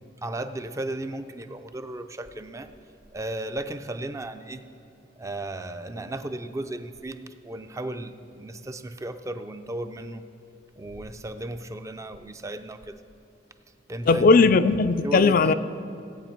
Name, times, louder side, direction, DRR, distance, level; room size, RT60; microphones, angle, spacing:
voice 1, 0.2-2.7 3.1-4.6 5.2-10.2 10.8-13.0 13.9-14.3 15.0-15.5, right 1 dB, 15° right, 9 dB, 0.4 m, -35 dB
voice 2, 14.1-15.5, left 4 dB, 50° left, 13 dB, 0.4 m, -18 dB
17.5 x 8.6 x 4.4 m, 2.6 s
head